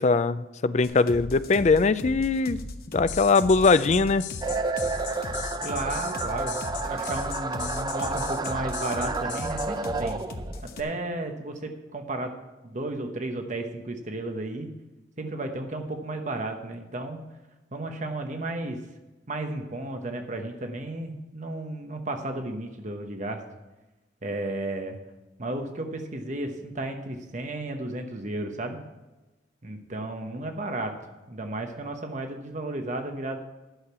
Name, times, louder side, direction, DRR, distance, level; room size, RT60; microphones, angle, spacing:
voice 1, 0.0-2.6 2.9-4.2, left 4 dB, 40° left, 14 dB, 0.4 m, -21 dB
sound 1, 0.8-10.8, left 1 dB, 55° left, 1.1 m, -37 dB
sound 2, 3.1-9.7, left 10 dB, 90° left, 0.9 m, -38 dB
sound 3, 4.4-10.6, right 3 dB, 25° right, 0.6 m, -31 dB
voice 2, 5.6-6.6 6.8-10.2 10.6-12.3 12.6-14.7 15.2-17.2 17.7-18.8 19.3-23.4 24.2-25.0 25.4-28.8 29.6-30.9 31.3-33.4, right 2 dB, 45° right, 5 dB, 1.0 m, -33 dB
11.5 x 6.6 x 6.9 m, 1.1 s
head